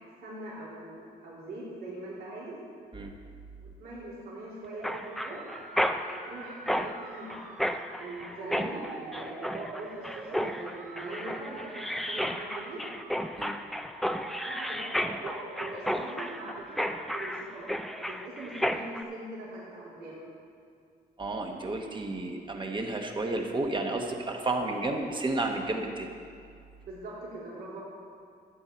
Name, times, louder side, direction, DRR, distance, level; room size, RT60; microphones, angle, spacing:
voice 1, 0.2-2.6 3.6-5.4 6.1-7.4 8.0-12.8 14.3-20.2 26.9-27.8, right 2 dB, 70° right, -7 dB, 3.1 m, -42 dB
sound 1, 4.7-17.2, right 3 dB, 45° right, 1.2 m, -47 dB
Mechanisms, 4.8-19.0, equal, ahead, 0.4 m, -33 dB
voice 2, 21.2-26.1, right 2 dB, 30° right, 3 dB, 1.2 m, -31 dB
13.0 x 8.0 x 4.4 m, 2.3 s
cardioid pair, 115°, 17 cm